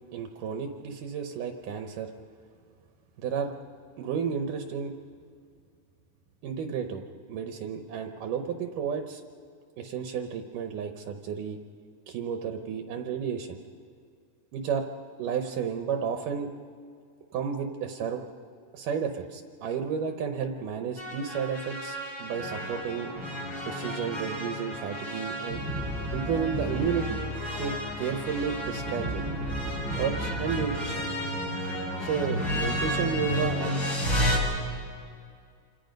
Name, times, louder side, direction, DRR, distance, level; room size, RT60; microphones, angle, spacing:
voice 1, 0.1-2.1 3.2-3.5 4.0-4.9 6.4-9.2 9.8-11.6 12.1-13.6 14.5-14.9 15.2-16.5 17.3-18.2 18.7-23.1 23.7-25.6 26.1-27.2 27.5-29.2 29.9-31.1 32.0-33.8, right 7 dB, 75° right, 5 dB, 2.5 m, -32 dB
sound 1, 21.0-34.4, equal, 25° left, 5.1 m, -31 dB
27.5 x 27.0 x 5.3 m, 2.2 s
omnidirectional pair, 4.0 m